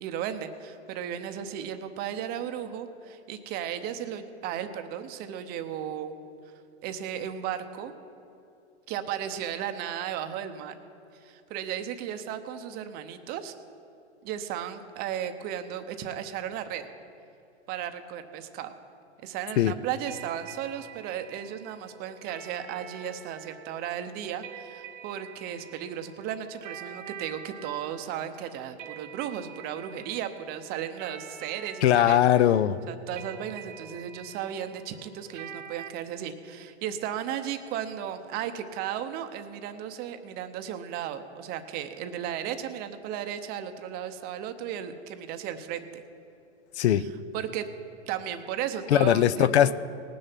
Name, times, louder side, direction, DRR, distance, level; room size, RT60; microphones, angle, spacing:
voice 1, 0.0-6.1 6.5-6.6 6.8-7.9 8.9-10.7 11.1-13.5 14.2-16.9 17.7-18.7 19.2-32.2 32.9-46.0 46.9-47.7 48.1-49.7, right 9 dB, 25° right, 9 dB, 0.7 m, -35 dB
sound 1, 20.1-35.9, right 8 dB, 80° right, 0.9 m, -46 dB
voice 2, 31.8-32.8 46.8-47.1 48.9-49.7, left 11 dB, 65° left, 16 dB, 0.6 m, -20 dB
18.5 x 6.6 x 5.9 m, 2.7 s
hypercardioid pair, 135°, 36 cm